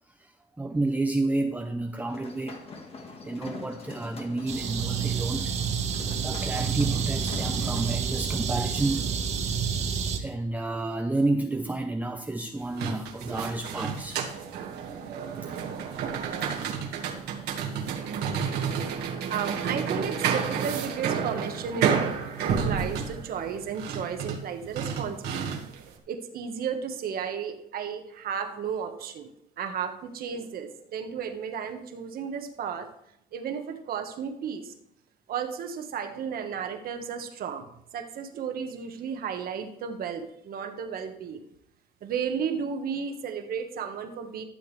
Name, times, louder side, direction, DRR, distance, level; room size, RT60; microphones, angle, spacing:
voice 1, 0.6-2.6 3.2-5.5 5.9-9.2 10.2-14.4 15.4-15.6, right 2 dB, 10° right, 0.6 m, -30 dB
sound 1, 2.1-8.0, left 3 dB, 35° left, 1.7 m, -43 dB
sound 2, 4.5-10.2, right 7 dB, 40° right, 1.6 m, -29 dB
sound 3, 12.6-25.9, right 7 dB, 75° right, 1.8 m, -30 dB
voice 2, 19.3-22.0 22.4-25.6 26.1-29.3 29.6-32.9 33.3-34.7 35.3-37.6 37.9-41.5 42.0-44.4, right 7 dB, 60° right, 1.5 m, -33 dB
13.0 x 7.1 x 3.3 m
cardioid pair, 110°, 17 cm